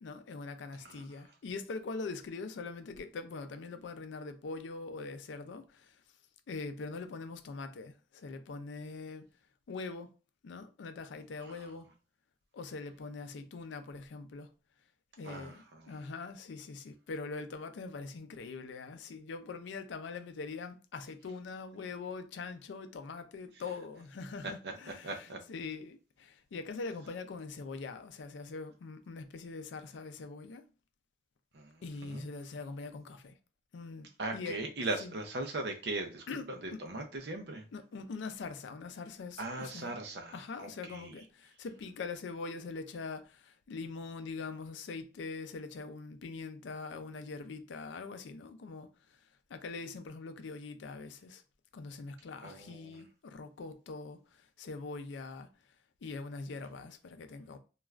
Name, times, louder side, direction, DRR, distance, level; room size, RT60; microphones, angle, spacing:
voice 1, 0.0-5.6 6.5-7.9 8.2-9.2 9.7-10.1 10.4-11.8 12.5-14.5 15.2-25.0 25.5-26.0 26.5-30.6 31.8-33.2 33.7-34.1 34.3-34.6 35.0-35.1 36.3-36.5 36.7-36.8 37.7-39.9 40.3-41.2 41.6-43.2 43.7-48.9 49.5-51.4 51.7-54.2 54.6-55.5 56.0-57.6, left 4 dB, 75° left, 0.4 m, -42 dB
voice 2, 11.4-11.8 15.2-16.0 23.5-23.6 24.4-25.4 31.5-31.7 32.0-32.2 34.2-37.6 39.4-41.2 52.4-53.0, right 2 dB, 60° right, 0.6 m, -39 dB
3.1 x 2.3 x 2.3 m
head